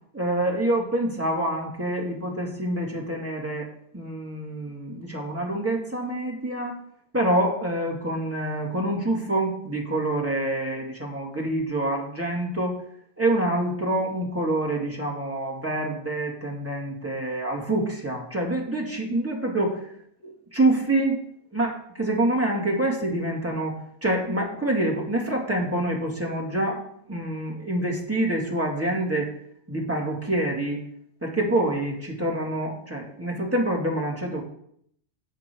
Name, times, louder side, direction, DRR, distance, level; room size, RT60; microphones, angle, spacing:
voice 1, 0.1-6.8 7.1-12.8 13.2-19.9 20.2-21.2 21.5-26.8 27.1-29.3 29.7-30.8 31.2-34.4, right 1 dB, 10° right, -2 dB, 2.7 m, -26 dB
16.5 x 6.0 x 4.8 m, 0.69 s
omnidirectional pair, 1.3 m